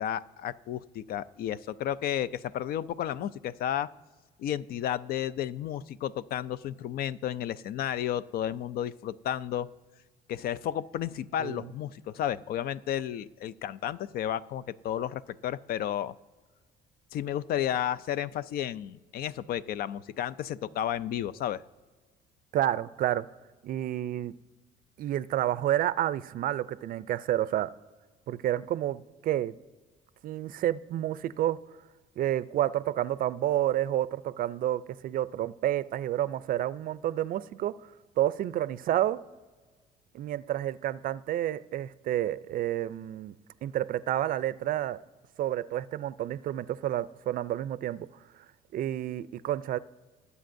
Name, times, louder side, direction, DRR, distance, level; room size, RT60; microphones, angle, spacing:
voice 1, 0.0-3.9 4.4-9.7 10.3-16.1 17.1-21.6, left 11 dB, 65° left, 0.4 m, -32 dB
voice 2, 22.5-23.3 23.6-24.3 25.0-27.7 28.3-29.6 30.2-31.6 32.2-37.7 38.2-39.2 40.1-43.3 43.6-45.0 45.4-48.1 48.7-49.8, right 12 dB, 55° right, 0.4 m, -29 dB
20.0 x 8.2 x 2.6 m
cardioid pair, 110°, 17 cm